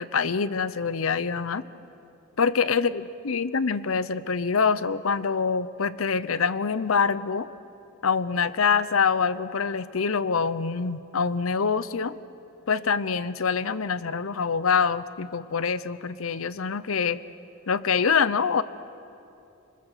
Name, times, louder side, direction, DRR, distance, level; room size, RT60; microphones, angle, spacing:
voice 1, 0.0-1.6 2.4-7.5 8.0-12.1 12.7-17.2 17.7-18.6, left 5 dB, 75° left, 15 dB, 0.7 m, -25 dB
29.5 x 21.5 x 6.7 m, 2.7 s
head